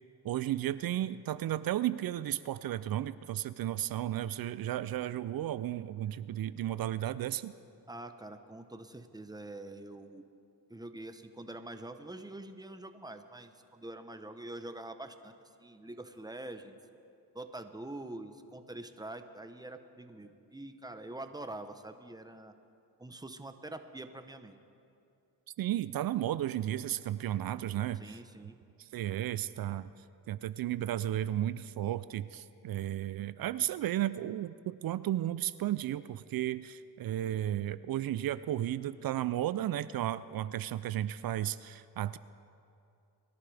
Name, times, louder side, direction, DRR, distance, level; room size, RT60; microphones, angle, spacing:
voice 1, 0.2-7.5 25.6-28.2 28.9-29.9 30.3-42.2, right 12 dB, 60° right, 16 dB, 0.5 m, -34 dB
voice 2, 7.9-10.2 10.7-15.3 15.6-16.7 17.3-22.5 23.0-24.6 27.9-28.6, right 2 dB, 10° right, 8 dB, 0.9 m, -45 dB
22.5 x 11.0 x 3.4 m, 2.6 s
cardioid pair, 65°, 40 cm